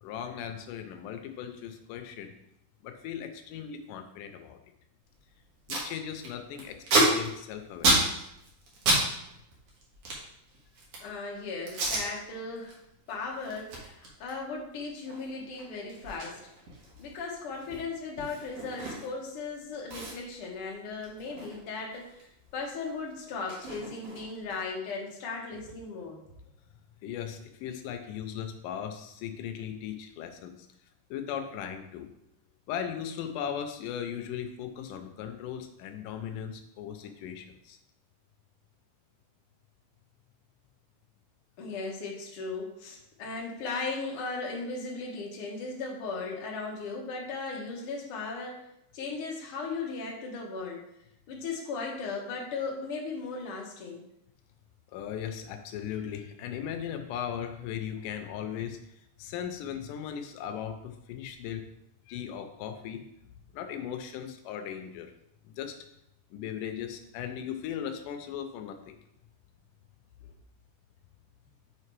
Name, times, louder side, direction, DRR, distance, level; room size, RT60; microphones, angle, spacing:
voice 1, 0.0-2.3 2.8-4.6 5.7-8.3 27.0-30.7 31.1-32.1 32.7-37.8 54.9-58.8 59.2-61.6 62.1-63.0 63.5-65.1 65.4-65.8 66.3-69.0, left 9 dB, 90° left, 7 dB, 2.2 m, -38 dB
Packing tape duct tape, 5.1-5.2 5.4-5.9 6.2-9.0 9.3-11.1 11.7-12.0 12.5-12.7 13.1-19.3 19.5-19.6 19.9-22.3 22.5-24.5, right 1 dB, 60° right, 2.2 m, -31 dB
voice 2, 11.0-12.8 13.1-16.4 17.0-22.2 22.5-26.2 41.6-48.6 48.9-50.8 51.3-54.0, left 4 dB, 60° left, -2 dB, 1.6 m, -37 dB
6.8 x 3.2 x 4.6 m, 0.80 s
omnidirectional pair, 3.6 m